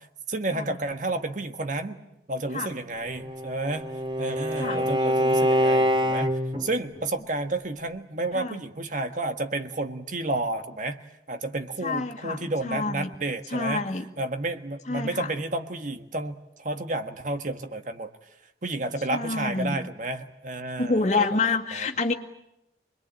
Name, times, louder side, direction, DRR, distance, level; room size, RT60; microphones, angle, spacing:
voice 1, 0.0-2.0 2.3-3.9 4.2-6.3 6.6-11.0 11.3-13.8 14.2-18.1 18.6-21.9, right 2 dB, 45° right, 8 dB, 1.4 m, -31 dB
Bowed string instrument, 3.1-6.7, equal, 30° right, 2.0 m, -25 dB
voice 2, 4.6-4.9 8.3-8.6 11.8-13.1 13.5-14.0 14.9-15.3 19.1-19.8 20.8-22.1, left 3 dB, 40° left, 2 dB, 2.1 m, -28 dB
26.0 x 21.5 x 9.0 m, 0.89 s
head